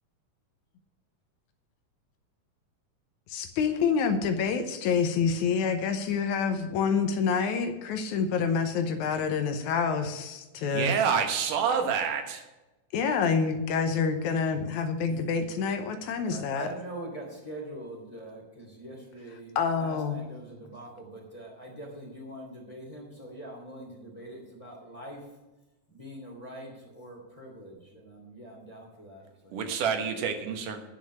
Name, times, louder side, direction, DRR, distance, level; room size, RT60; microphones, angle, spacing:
voice 1, 3.3-10.9 12.9-16.7 19.6-20.2, left 5 dB, 75° left, 7 dB, 2.1 m, -27 dB
voice 2, 10.6-12.5 29.5-30.8, right 7 dB, 85° right, 6 dB, 2.8 m, -28 dB
voice 3, 16.3-25.3 25.9-29.8, right 1 dB, 10° left, -1 dB, 2.5 m, -43 dB
10.0 x 6.4 x 8.3 m, 1.1 s
omnidirectional pair, 3.6 m